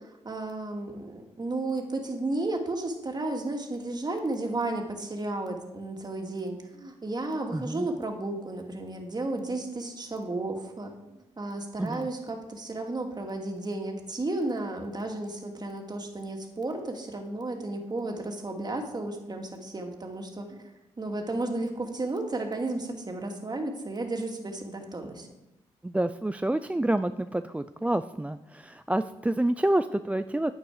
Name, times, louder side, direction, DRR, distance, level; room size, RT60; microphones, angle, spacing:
voice 1, 0.2-10.9 11.4-20.5 21.0-25.3, right 2 dB, 35° right, 3 dB, 2.5 m, -33 dB
voice 2, 7.5-7.9 11.8-12.1 25.8-30.5, right 1 dB, 10° right, 11 dB, 0.4 m, -28 dB
9.8 x 9.4 x 5.0 m, 0.93 s
supercardioid pair, 60°, 13 cm